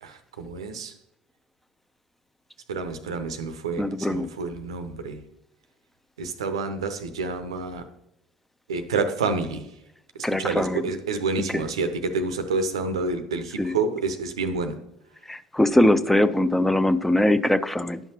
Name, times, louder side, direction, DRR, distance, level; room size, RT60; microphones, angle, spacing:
voice 1, 0.0-0.9 2.7-5.2 6.2-7.8 8.7-9.6 10.3-14.8, right 4 dB, 85° right, 9 dB, 0.6 m, -28 dB
voice 2, 3.8-4.2 10.2-10.8 11.5-11.6 13.6-13.8 15.3-18.0, left 1 dB, 5° left, 12 dB, 0.5 m, -21 dB
11.0 x 5.8 x 2.9 m, 0.86 s
hypercardioid pair, 65°, 3 cm